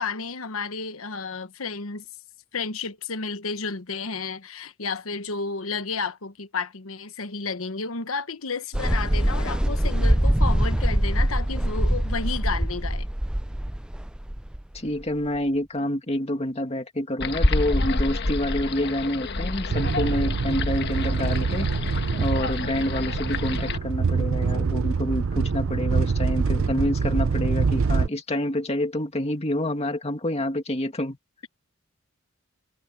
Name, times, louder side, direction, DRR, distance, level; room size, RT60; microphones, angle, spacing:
voice 1, 0.0-2.0 2.5-13.1, left 4 dB, 80° left, 1.2 m, -32 dB
sound 1, 8.7-15.4, right 1 dB, 5° right, 0.3 m, -23 dB
voice 2, 14.7-31.2, left 1 dB, 30° left, 2.4 m, -28 dB
sound 2, 17.2-23.8, left 2 dB, 55° left, 1.4 m, -28 dB
sound 3, 19.7-28.1, right 4 dB, 70° right, 0.5 m, -25 dB
head